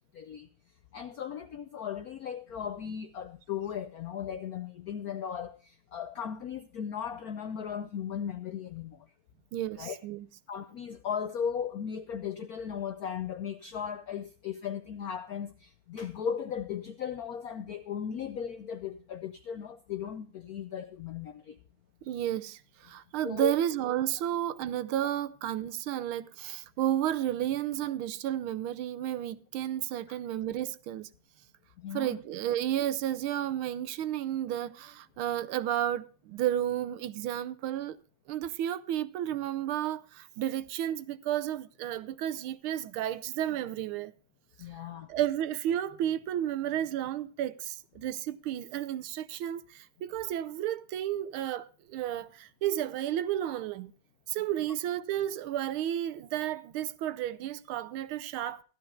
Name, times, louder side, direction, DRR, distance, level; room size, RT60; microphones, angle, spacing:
voice 1, 0.1-0.5 0.9-9.0 9.8-10.0 10.5-21.6 23.2-23.6 30.1-30.2 31.8-32.2 44.6-45.1, left 8 dB, 75° left, 0.8 m, -37 dB
voice 2, 9.5-10.3 22.0-31.1 31.9-38.0 38.3-44.1 45.1-53.9 54.3-58.6, right 11 dB, 75° right, 1.5 m, -32 dB
15.0 x 12.5 x 2.4 m
omnidirectional pair, 2.4 m